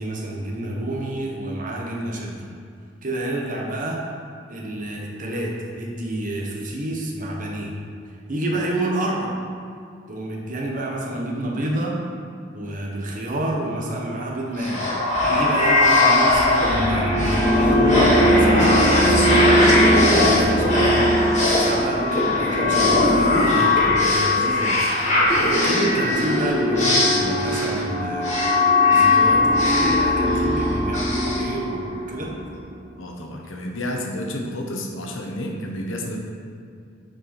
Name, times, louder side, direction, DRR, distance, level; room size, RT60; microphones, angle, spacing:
voice 1, 0.0-2.4 3.0-4.0 4.5-7.7 8.1-9.4 10.1-12.0 12.5-21.1 21.5-24.8 25.3-28.3 28.9-32.3, right 1 dB, 40° right, -1 dB, 1.2 m, -29 dB
sound 1, 14.6-32.2, left 1 dB, 35° left, 2.0 m, -18 dB
voice 2, 33.0-36.2, left 1 dB, 80° left, 1 dB, 1.1 m, -30 dB
9.0 x 5.0 x 4.3 m, 2.3 s
head